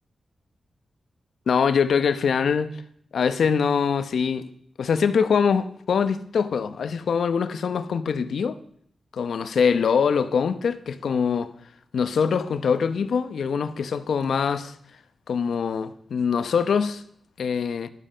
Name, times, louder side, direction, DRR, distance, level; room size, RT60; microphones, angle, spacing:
voice 1, 1.5-2.7 3.1-4.5 4.8-8.6 9.1-11.5 11.9-14.8 15.3-17.0 17.4-17.9, left 6 dB, 90° left, 0.8 m, -23 dB
12.5 x 11.5 x 5.5 m
wide cardioid pair, 155°, 0 cm